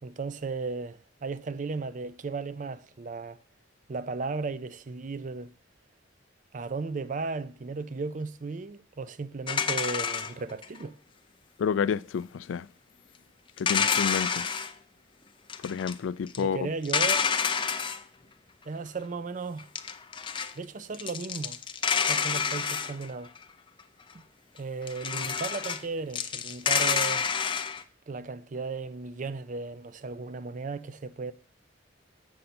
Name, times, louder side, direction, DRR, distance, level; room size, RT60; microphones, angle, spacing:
voice 1, 0.0-3.4 3.9-5.5 6.5-11.0 16.4-17.3 18.7-19.7 20.6-21.6 22.0-23.3 24.1-24.2 24.5-27.3 28.1-31.3, right 4 dB, 40° right, 0.4 m, -35 dB
sound 1, 9.5-10.8 13.6-14.7 15.5-15.9 16.3-16.4 16.8-18.0 19.6-20.5 20.9-23.4 24.9-25.8 26.1-27.8, left 6 dB, 25° left, 0.5 m, -28 dB
voice 2, 11.6-12.7 13.6-14.5 15.6-16.7, left 7 dB, 80° left, 0.3 m, -29 dB
7.7 x 6.7 x 4.2 m
head